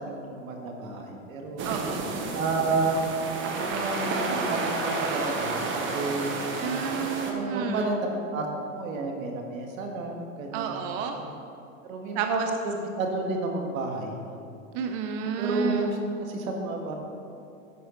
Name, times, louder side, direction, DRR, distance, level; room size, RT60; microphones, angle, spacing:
voice 1, 0.0-1.7 2.3-3.1 3.5-5.6 5.9-6.5 7.2-11.4 11.8-14.2 15.4-16.0 16.3-16.9, right 2 dB, 80° right, 2 dB, 1.7 m, -31 dB
sound 1, 1.6-7.3, right 3 dB, 30° right, 1.1 m, -30 dB
voice 2, 1.6-2.1 6.6-7.9 10.5-11.2 12.1-12.5 14.7-15.9, right 7 dB, 45° right, 5 dB, 0.7 m, -31 dB
11.0 x 7.8 x 3.9 m, 2.6 s
supercardioid pair, 130°, 40 cm